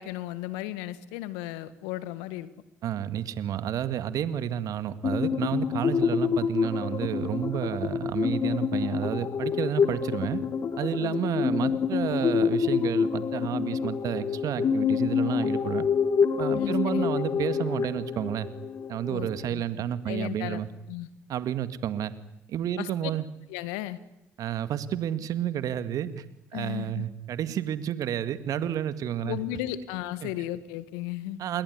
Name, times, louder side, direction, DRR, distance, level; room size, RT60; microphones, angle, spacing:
voice 1, 0.0-2.5 11.0-11.8 16.5-17.1 19.1-20.6 20.9-21.1 22.8-22.9 23.5-24.0 26.5-27.1 29.2-31.4, left 14 dB, 80° left, 15 dB, 1.7 m, -35 dB
voice 2, 2.8-10.4 10.8-15.9 16.3-18.5 18.9-20.7 21.3-22.1 22.5-23.3 24.4-26.2 26.5-29.4 30.2-30.3 31.4-31.6, right 10 dB, 65° right, 12 dB, 2.1 m, -30 dB
sound 1, 5.0-19.4, left 6 dB, 50° left, 2.2 m, -27 dB
28.5 x 22.0 x 9.6 m, 0.84 s
hypercardioid pair, 50°, 7 cm